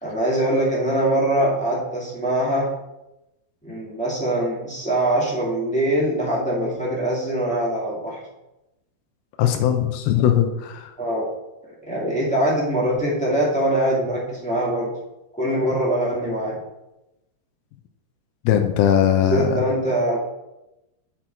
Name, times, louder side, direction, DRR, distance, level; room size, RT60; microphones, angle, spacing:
voice 1, 0.0-2.7 3.6-8.2 11.0-11.3 11.8-14.9 15.4-16.6 19.2-20.2, right 1 dB, 5° left, -7 dB, 1.0 m, -23 dB
voice 2, 9.4-10.9 18.5-19.6, left 10 dB, 80° left, 5 dB, 2.5 m, -19 dB
7.8 x 6.1 x 4.5 m, 0.94 s
omnidirectional pair, 4.4 m